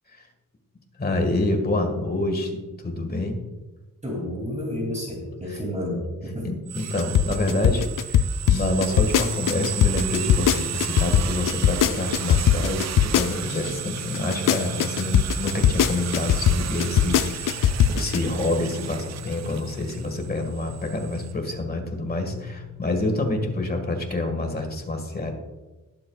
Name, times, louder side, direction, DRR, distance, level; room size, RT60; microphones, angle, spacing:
voice 1, 1.0-3.4 5.5-5.6 6.4-25.3, left 2 dB, 30° left, 4 dB, 1.8 m, -27 dB
voice 2, 4.0-6.5 6.8-6.9, left 1 dB, 20° right, -1 dB, 2.8 m, -30 dB
sound 1, 6.7-21.3, right 10 dB, 55° right, 0.4 m, -34 dB
sound 2, 7.0-13.7 14.1-18.2, left 9 dB, 70° left, 0.5 m, -20 dB
sound 3, 13.4-24.0, left 12 dB, 80° right, 3.7 m, -42 dB
20.0 x 7.7 x 2.4 m, 1.2 s
wide cardioid pair, 140°, 33 cm